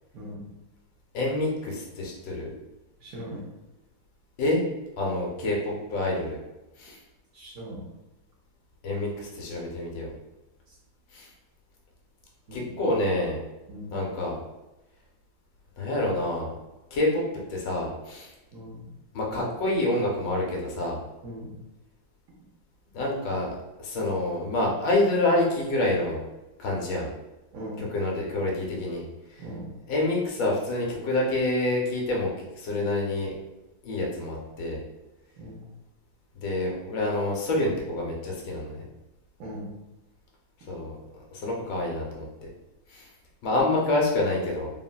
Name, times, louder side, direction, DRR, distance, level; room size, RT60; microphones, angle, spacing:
voice 1, 1.1-2.5 4.4-4.6 5.0-6.4 6.8-7.0 8.8-10.1 11.1-11.3 12.5-13.4 13.9-14.4 15.8-16.5 16.9-17.2 17.5-18.3 19.1-21.0 22.9-26.2 26.6-27.1 27.8-29.0 29.3-29.4 29.9-33.3 33.8-34.8 36.3-38.8 40.7-42.3 42.9-43.1 43.4-44.7, left 2 dB, 70° left, -2 dB, 1.2 m, -27 dB
voice 2, 3.0-3.4 7.3-7.8 12.5-12.7 13.7-14.0 18.5-18.9 21.2-21.6 27.5-27.8 29.4-29.7 35.4-35.7 39.4-39.7, equal, 70° right, -5 dB, 0.8 m, -39 dB
3.6 x 2.1 x 2.2 m, 0.99 s
omnidirectional pair, 2.2 m